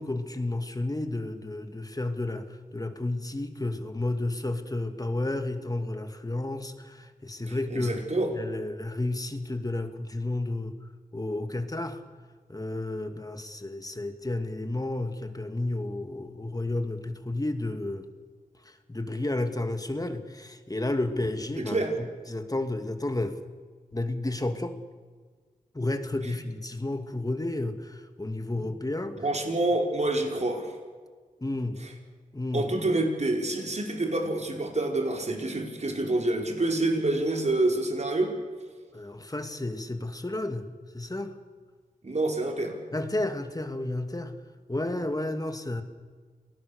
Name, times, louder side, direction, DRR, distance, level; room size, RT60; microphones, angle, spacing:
voice 1, 0.0-2.5 2.7-7.9 8.3-10.7 11.1-12.0 12.5-18.1 18.9-21.8 22.3-23.4 23.9-24.8 25.7-29.2 31.4-31.8 32.3-32.6 38.9-40.7 40.9-41.3 42.9-44.3 44.7-45.8, left 2 dB, 25° left, 7 dB, 2.5 m, -31 dB
voice 2, 7.4-8.4 21.6-21.9 26.2-26.4 29.2-30.7 31.8-31.9 32.5-38.3 42.0-42.8, right 2 dB, 50° right, 2 dB, 4.9 m, -27 dB
28.0 x 19.5 x 6.8 m, 1.5 s
cardioid pair, 40°, 15 cm